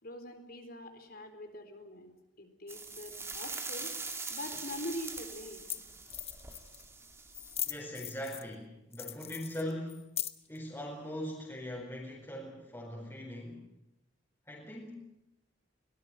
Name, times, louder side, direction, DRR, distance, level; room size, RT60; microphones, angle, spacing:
voice 1, 0.0-2.1 2.4-3.9 4.3-5.6, left 1 dB, 55° left, 6 dB, 4.1 m, -43 dB
sound 1, 2.7-7.8, right 4 dB, 15° right, 2.5 m, -42 dB
sound 2, 4.6-4.7 5.4-5.5 5.7-5.8 6.1-6.8 7.3-8.5 8.9-10.6, left 11 dB, 35° left, 1.3 m, -39 dB
voice 2, 7.6-10.0 10.5-13.6 14.5-15.0, equal, 15° left, -3 dB, 4.5 m, -41 dB
23.5 x 18.5 x 9.2 m, 0.89 s
head